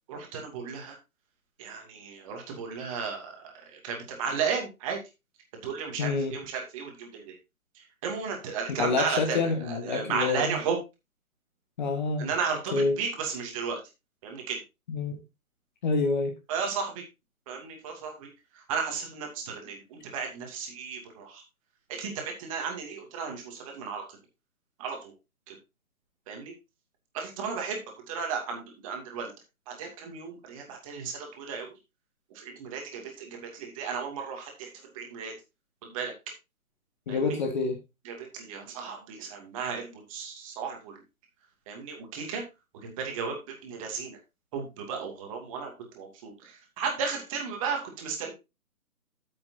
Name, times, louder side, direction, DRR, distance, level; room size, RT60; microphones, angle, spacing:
voice 1, 0.1-1.0 1.6-3.4 3.7-5.0 5.6-7.4 7.8-10.8 12.2-13.8 14.2-14.6 16.5-17.0 17.5-18.3 18.5-21.4 22.0-24.0 24.8-25.1 25.5-25.6 26.3-26.5 27.1-27.8 28.1-29.3 29.7-31.7 32.3-35.3 35.8-36.1 37.1-37.4 38.0-41.0 41.7-42.4 42.8-44.2 44.5-48.3, right 6 dB, 20° right, 2.5 m, -34 dB
voice 2, 6.0-6.4 8.8-10.6 11.8-12.3 12.7-13.0 14.9-15.2 15.8-16.3 37.1-37.8, left 4 dB, 30° left, 1.5 m, -27 dB
12.5 x 8.0 x 2.7 m
figure-of-eight pair, 145°, 45 cm